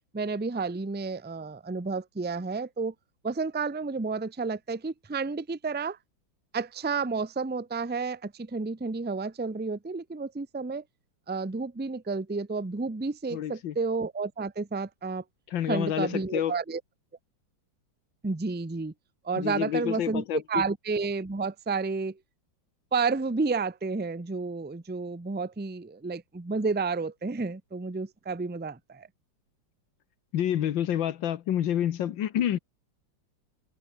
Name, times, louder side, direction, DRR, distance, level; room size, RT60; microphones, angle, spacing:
voice 1, 0.1-2.9 3.2-6.0 6.5-10.8 11.3-15.2 15.7-16.8 18.2-18.9 19.2-22.2 22.9-29.1, right 4 dB, 15° right, 0.3 m, -31 dB
voice 2, 13.3-13.8 15.5-16.6 19.4-20.6 30.3-32.6, left 10 dB, 80° left, 1.8 m, -28 dB
omnidirectional pair, 2.1 m